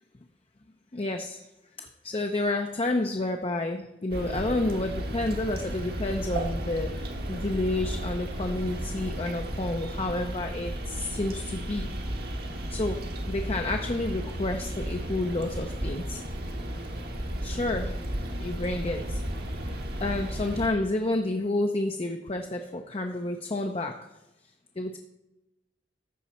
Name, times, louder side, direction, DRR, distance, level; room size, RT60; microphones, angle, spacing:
voice 1, 0.9-1.4 1.8-11.9 12.7-16.2 17.4-18.0 18.4-19.2 19.7-19.8 20.0-24.1 24.8-25.0, left 2 dB, 30° left, 4 dB, 0.6 m, -30 dB
sound 1, 4.1-20.7, right 1 dB, 60° right, 1.3 m, -34 dB
14.0 x 5.3 x 4.2 m, 0.96 s
head